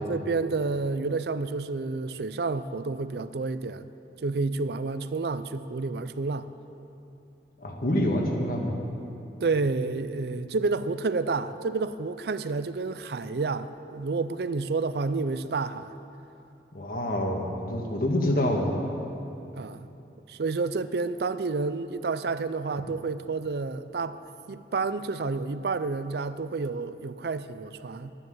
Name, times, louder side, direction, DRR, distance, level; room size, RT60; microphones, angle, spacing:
voice 1, 0.0-3.9 4.2-6.5 9.4-15.9 19.6-19.9 20.3-24.2 24.5-28.1, right 3 dB, 60° right, 13 dB, 0.5 m, -30 dB
voice 2, 7.6-8.8 16.7-18.7, left 1 dB, 50° left, 1 dB, 1.8 m, -26 dB
11.5 x 10.5 x 7.9 m, 2.9 s
head